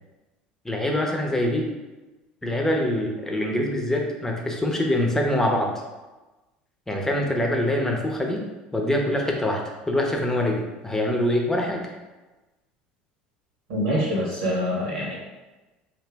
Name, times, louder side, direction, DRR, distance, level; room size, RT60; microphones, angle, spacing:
voice 1, 0.6-1.7 2.4-5.7 6.9-8.4 8.7-11.8, left 1 dB, 10° left, 1 dB, 0.9 m, -24 dB
voice 2, 13.7-15.2, equal, 75° right, -4 dB, 1.2 m, -25 dB
3.8 x 2.7 x 3.4 m, 1.1 s
hypercardioid pair, 70°, 5 cm